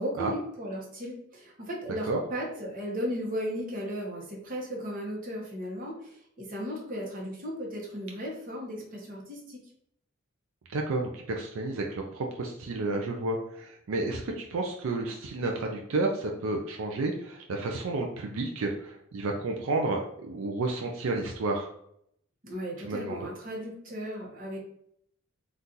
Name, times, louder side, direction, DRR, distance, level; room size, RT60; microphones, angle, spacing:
voice 1, 0.0-9.6 22.4-24.6, equal, 40° right, -2 dB, 0.9 m, -36 dB
voice 2, 10.7-21.7 22.8-23.2, right 2 dB, 75° right, 1 dB, 0.4 m, -31 dB
3.7 x 2.4 x 2.7 m, 0.71 s
head